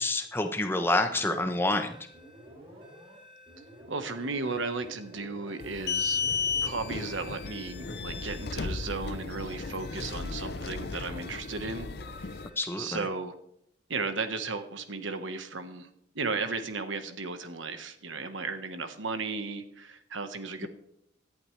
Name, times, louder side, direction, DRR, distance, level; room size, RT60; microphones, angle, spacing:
voice 1, 0.0-1.9 12.6-13.0, left 2 dB, 10° left, 7 dB, 0.9 m, -27 dB
sound 1, 1.1-13.3, equal, 25° right, 6.3 m, -51 dB
voice 2, 3.9-6.2 6.6-12.4 12.8-13.4 13.9-15.9 16.1-20.7, right 4 dB, 80° right, 9 dB, 1.4 m, -35 dB
sound 2, 5.6-12.5, left 5 dB, 55° left, 0.6 m, -34 dB
17.5 x 11.0 x 3.3 m, 0.73 s
head